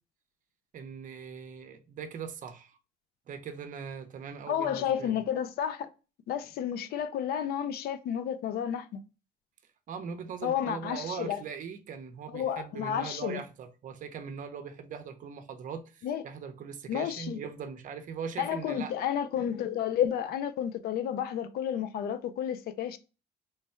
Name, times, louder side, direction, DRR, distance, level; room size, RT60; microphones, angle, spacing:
voice 1, 0.7-2.8 3.3-5.1 9.9-18.9, right 6 dB, 50° right, 0.6 m, -40 dB
voice 2, 4.5-5.9 6.3-9.0 10.4-11.4 12.3-13.4 16.0-16.2 16.9-17.4 18.4-23.0, left 9 dB, 65° left, 0.4 m, -31 dB
3.2 x 2.2 x 4.2 m
cardioid pair, 110°, 17 cm